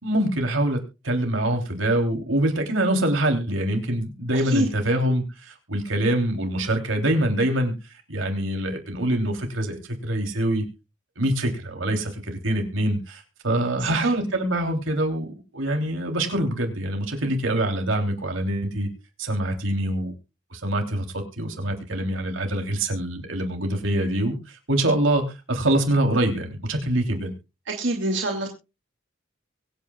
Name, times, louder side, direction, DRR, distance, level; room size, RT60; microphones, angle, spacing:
voice 1, 0.0-7.7 8.1-10.6 11.2-18.9 19.2-20.1 20.5-27.3, right 1 dB, 85° right, 4 dB, 3.3 m, -25 dB
voice 2, 4.3-4.7 13.8-14.1 27.7-28.5, right 1 dB, 65° right, 1 dB, 2.4 m, -26 dB
23.5 x 9.2 x 2.4 m, 0.28 s
head